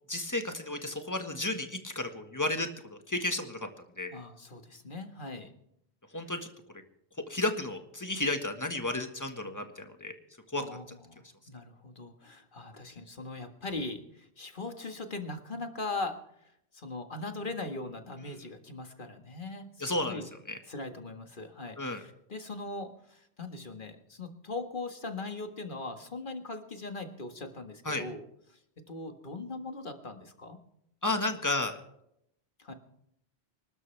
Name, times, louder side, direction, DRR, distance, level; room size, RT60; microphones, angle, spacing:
voice 1, 0.1-3.6 4.0-4.2 6.1-6.5 7.3-10.1 10.5-10.6 19.8-20.2 20.5-20.6 21.8-22.0 27.8-28.0 31.0-31.8, left 2 dB, 15° left, 6 dB, 1.6 m, -32 dB
voice 2, 4.1-5.5 10.5-16.2 16.7-20.2 20.7-28.2 28.5-30.6 32.6-32.7, left 3 dB, 50° left, 5 dB, 1.9 m, -40 dB
26.0 x 12.5 x 3.4 m, 0.75 s
omnidirectional pair, 1.1 m